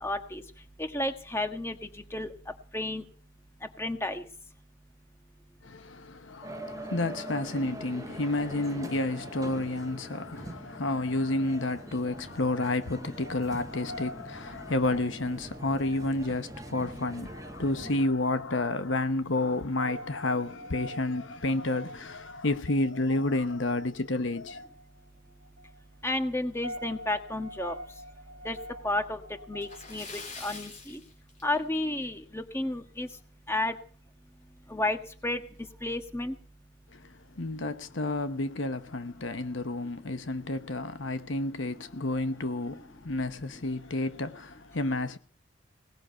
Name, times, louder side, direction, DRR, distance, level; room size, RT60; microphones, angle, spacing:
voice 1, 0.0-0.4 0.8-1.7 2.1-2.3 2.7-3.0 3.8-4.2 26.0-27.7 28.4-28.6 28.8-29.2 29.5-30.0 30.4-31.0 31.4-33.1 33.5-33.7 34.7-35.0 35.2-35.4 35.8-36.3, left 2 dB, 15° left, 1.5 m, -31 dB
voice 2, 5.6-24.7 36.9-45.2, left 2 dB, 75° left, 1.0 m, -30 dB
sound 1, 6.4-18.0, right 1 dB, 15° right, 0.7 m, -44 dB
sound 2, 13.2-30.0, equal, 80° right, 1.5 m, -46 dB
Splash splatter, 29.6-31.9 32.3-32.4 32.9-33.0 34.4-34.5 34.8-34.9 35.5-35.8, left 4 dB, 35° left, 3.4 m, -44 dB
18.5 x 6.5 x 8.8 m
head